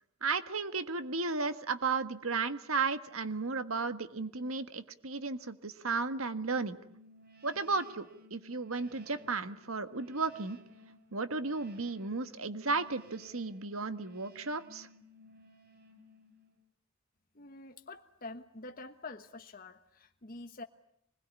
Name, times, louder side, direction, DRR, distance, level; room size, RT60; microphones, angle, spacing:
voice 1, 0.2-6.8 7.4-10.6 11.1-14.9, right 4 dB, 85° right, 10 dB, 1.6 m, -34 dB
sound 1, 6.8-16.7, left 1 dB, 50° right, 4.7 m, -58 dB
voice 2, 17.3-20.6, left 3 dB, 45° left, 5 dB, 1.2 m, -47 dB
26.0 x 21.0 x 9.7 m, 0.75 s
head